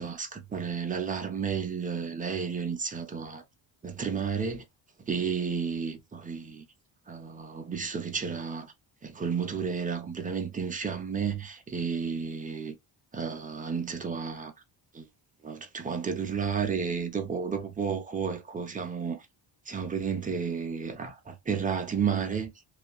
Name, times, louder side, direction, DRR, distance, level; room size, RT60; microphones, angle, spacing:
voice 1, 0.0-3.4 3.8-4.6 5.1-6.6 7.1-8.7 9.0-12.7 13.1-14.5 14.9-15.1 15.4-19.2 19.7-22.5, right 6 dB, 20° right, 0.4 m, -32 dB
2.8 x 2.3 x 2.3 m
cardioid pair, 155°, 46 cm